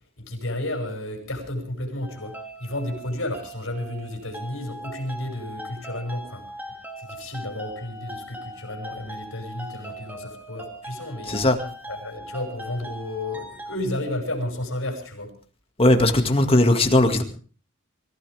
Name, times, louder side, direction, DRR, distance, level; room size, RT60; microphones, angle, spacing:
voice 1, 0.2-6.5 7.0-11.4 11.9-15.3, left 1 dB, 65° left, 2 dB, 6.1 m, -32 dB
sound 1, 2.0-13.8, right 1 dB, 10° right, 2.3 m, -40 dB
voice 2, 15.8-17.2, left 1 dB, 25° left, 5 dB, 2.0 m, -18 dB
24.5 x 15.5 x 3.5 m, 0.39 s
head